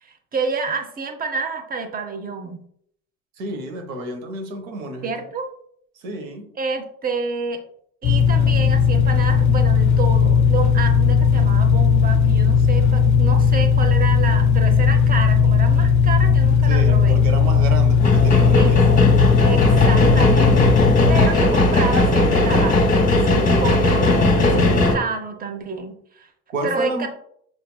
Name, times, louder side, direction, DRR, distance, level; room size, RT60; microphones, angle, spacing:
voice 1, 0.0-2.6 5.0-5.5 6.6-7.6 8.0-17.2 18.5-18.8 19.4-26.3 26.6-27.1, right 4 dB, 20° right, 7 dB, 0.7 m, -29 dB
voice 2, 3.4-5.1 6.0-6.5 16.7-18.8 26.5-27.1, right 2 dB, 70° right, 5 dB, 0.9 m, -30 dB
sound 1, 8.0-21.3, left 6 dB, 45° left, 0.5 m, -16 dB
sound 2, 18.0-25.0, left 2 dB, 20° left, 1.0 m, -17 dB
6.4 x 2.5 x 2.2 m, 0.66 s
figure-of-eight pair, 55°, 41 cm